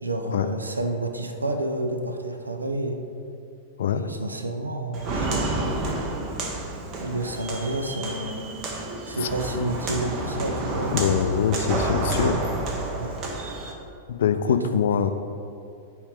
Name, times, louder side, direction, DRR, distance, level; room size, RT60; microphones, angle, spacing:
voice 1, 0.0-3.0 3.9-6.0 7.0-8.5 9.1-10.9 11.6-12.4 12.9-13.2 14.4-15.1, right 1 dB, 85° right, 5 dB, 0.6 m, -30 dB
Walk footsteps, 4.9-13.7, right 2 dB, 40° right, 1.0 m, -29 dB
voice 2, 10.9-12.4 14.1-15.1, left 8 dB, 65° left, 9 dB, 0.4 m, -23 dB
8.2 x 3.2 x 4.9 m, 2.5 s
figure-of-eight pair, 95°, 0 cm